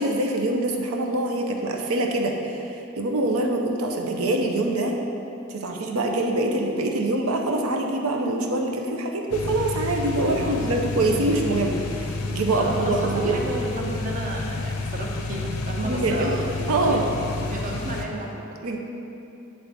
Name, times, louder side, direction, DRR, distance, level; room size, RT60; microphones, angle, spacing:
voice 1, 0.0-5.0 5.5-13.4 15.8-16.3 16.7-17.1 18.6-18.8, right 2 dB, 75° right, 1 dB, 0.7 m, -24 dB
sound 1, 9.3-18.1, left 3 dB, 80° left, 0.5 m, -30 dB
voice 2, 10.3-10.6 10.9-11.3 12.5-17.0 17.4-18.5, right 1 dB, 35° right, -1 dB, 0.7 m, -32 dB
9.6 x 3.3 x 4.1 m, 2.9 s
head